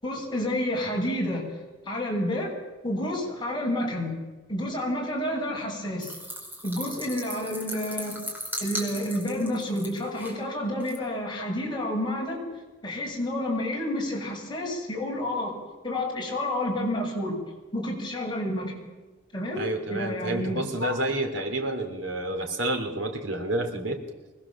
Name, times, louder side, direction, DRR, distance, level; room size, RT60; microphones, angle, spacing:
voice 1, 0.0-1.4 1.8-2.5 2.8-4.1 4.5-6.1 6.6-8.2 8.6-12.5 12.8-15.6 15.8-18.8 19.3-19.6 19.9-21.0, left 1 dB, 25° left, -1 dB, 6.5 m, -29 dB
sound 1, 6.0-10.4 10.8-11.0, equal, 10° right, 5.1 m, -37 dB
voice 2, 19.6-24.0, right 1 dB, 80° right, 4 dB, 3.2 m, -29 dB
24.5 x 20.0 x 7.4 m, 1.2 s
head